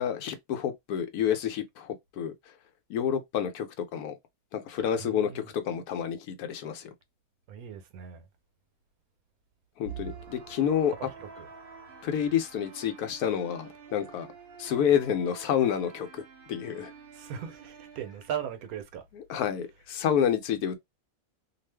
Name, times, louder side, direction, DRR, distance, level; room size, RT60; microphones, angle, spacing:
voice 1, 0.0-2.3 2.9-4.1 4.5-6.9 9.8-10.9 12.0-14.3 14.6-16.2 16.5-16.9 19.1-20.8, left 9 dB, 90° left, 1.2 m, -29 dB
voice 2, 5.0-5.5 7.5-8.3 11.0-11.5 17.1-19.1, right 9 dB, 75° right, 1.1 m, -38 dB
sound 1, 9.8-18.8, right 6 dB, 50° right, 0.8 m, -48 dB
2.5 x 2.4 x 3.3 m
omnidirectional pair, 1.5 m